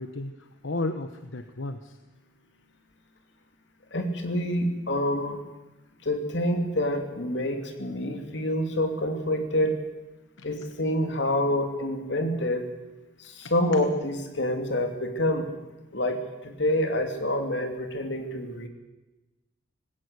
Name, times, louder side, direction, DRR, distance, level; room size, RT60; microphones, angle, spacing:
voice 1, 0.0-2.0 10.4-10.5 13.4-13.8, left 2 dB, 85° left, 9 dB, 1.1 m, -34 dB
voice 2, 3.9-5.4 6.0-9.8 10.4-12.7 13.2-15.5 15.9-18.7, left 1 dB, 65° left, 5 dB, 2.9 m, -27 dB
19.0 x 17.5 x 8.2 m, 1.1 s
head